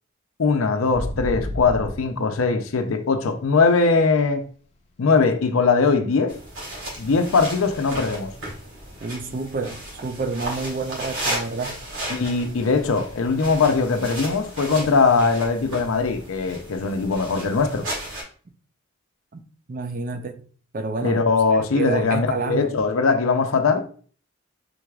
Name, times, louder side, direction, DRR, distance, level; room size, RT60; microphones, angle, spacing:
voice 1, 0.4-4.4 5.0-6.3 7.0-8.3 12.1-17.9 21.0-23.9, left 4 dB, 80° left, 0.5 m, -21 dB
sound 1, 0.9-4.3 4.6-6.9 7.1-7.5 7.8-9.7 10.0-10.1 10.5-10.8 11.2-11.3 13.5-13.6, left 1 dB, 30° left, 0.6 m, -34 dB
sound 2, 6.3-18.2, right 1 dB, 90° right, 1.9 m, -34 dB
voice 2, 9.0-11.8 19.3-19.4 19.7-20.4 20.7-21.2 21.5-22.8, right 4 dB, 40° right, 0.5 m, -29 dB
4.6 x 3.9 x 2.3 m
head